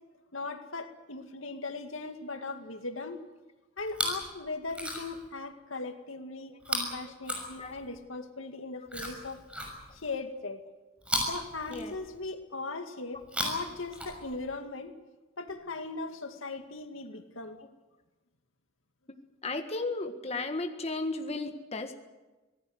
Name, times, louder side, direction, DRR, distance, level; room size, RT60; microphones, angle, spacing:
voice 1, 0.3-3.2 3.8-9.4 9.9-10.6 11.3-14.9 15.4-17.6, left 3 dB, 90° left, 6 dB, 2.2 m, -39 dB
Chewing mastication, 3.8-4.3 4.6-5.3 6.6-8.0 8.9-10.1 11.0-12.3 13.2-14.6 15.5-15.6, equal, 5° right, 6.2 m, -36 dB
voice 2, 7.0-7.8 8.2-8.3 11.7-12.0 19.4-21.9, left 2 dB, 30° left, 5 dB, 1.7 m, -35 dB
26.0 x 19.0 x 8.0 m, 1.2 s
head